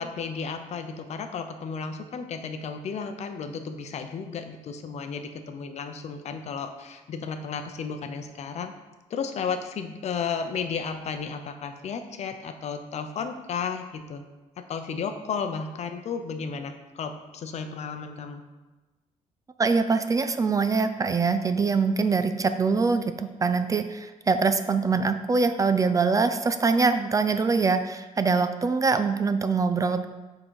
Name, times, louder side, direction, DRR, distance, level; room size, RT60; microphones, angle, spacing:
voice 1, 0.0-8.7 9.1-14.2 14.7-18.4, left 6 dB, 55° left, 7 dB, 0.6 m, -33 dB
voice 2, 19.6-30.1, right 4 dB, 25° right, 9 dB, 0.3 m, -23 dB
7.4 x 3.8 x 4.7 m, 1.2 s
cardioid pair, 130°, 13 cm